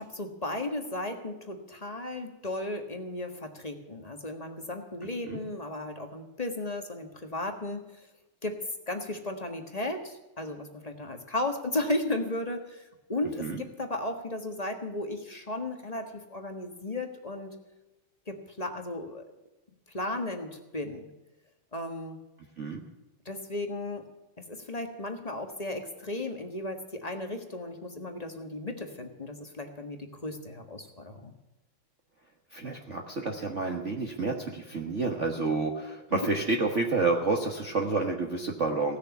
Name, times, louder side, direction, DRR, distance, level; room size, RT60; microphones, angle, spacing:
voice 1, 0.0-8.1 8.4-17.5 18.3-19.2 19.9-21.1 21.7-22.2 23.2-24.0 24.4-31.3 36.1-36.2, left 2 dB, 20° left, 4 dB, 1.3 m, -35 dB
voice 2, 32.5-39.0, right 3 dB, 40° right, 2 dB, 1.4 m, -29 dB
17.5 x 6.7 x 9.6 m, 1.0 s
omnidirectional pair, 2.3 m